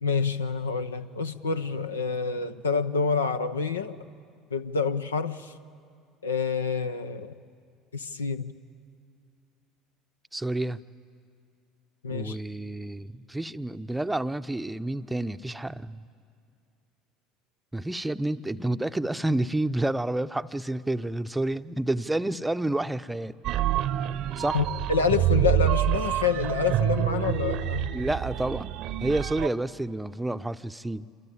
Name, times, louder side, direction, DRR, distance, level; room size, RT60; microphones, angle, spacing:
voice 1, 0.0-4.0 4.5-5.5 6.2-7.3 7.9-8.5 12.0-12.4 24.5-28.0, left 5 dB, 80° left, 10 dB, 0.8 m, -27 dB
voice 2, 10.3-10.8 12.1-16.0 17.7-23.3 24.4-24.6 27.9-28.7 29.0-31.1, right 1 dB, 10° right, 11 dB, 0.7 m, -29 dB
sound 1, 23.4-29.5, right 13 dB, 50° right, 0.8 m, -27 dB
27.0 x 24.0 x 8.9 m, 2.3 s
figure-of-eight pair, 65°, 0 cm